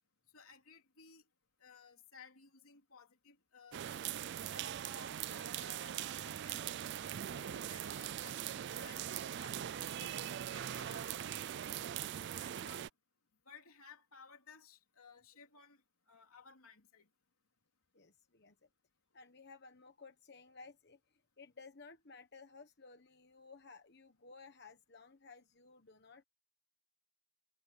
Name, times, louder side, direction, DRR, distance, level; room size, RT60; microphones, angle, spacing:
voice 1, 0.3-1.2 1.6-3.8 4.5-6.8 7.3-11.1 12.4-12.9 13.4-15.8 16.1-17.1, left 6 dB, 80° left, 3.3 m, -58 dB
sound 1, 3.7-12.9, right 10 dB, 55° right, 0.3 m, -41 dB
voice 2, 17.9-18.7 19.1-26.2, left 4 dB, 50° left, 1.2 m, -57 dB
head